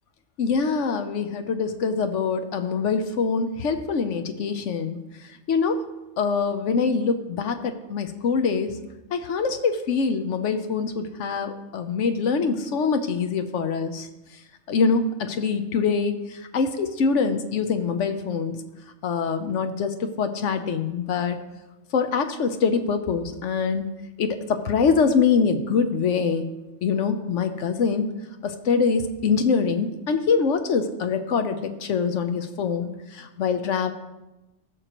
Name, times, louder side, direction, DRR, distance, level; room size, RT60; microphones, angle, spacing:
voice 1, 0.4-5.0 5.5-5.8 6.2-8.7 9.1-14.1 14.7-16.2 16.5-18.6 19.0-21.4 21.9-23.9 24.2-26.4 26.8-28.1 28.4-33.9, left 5 dB, 70° left, 8 dB, 1.0 m, -24 dB
16.5 x 6.3 x 3.0 m, 1.0 s
omnidirectional pair, 1.3 m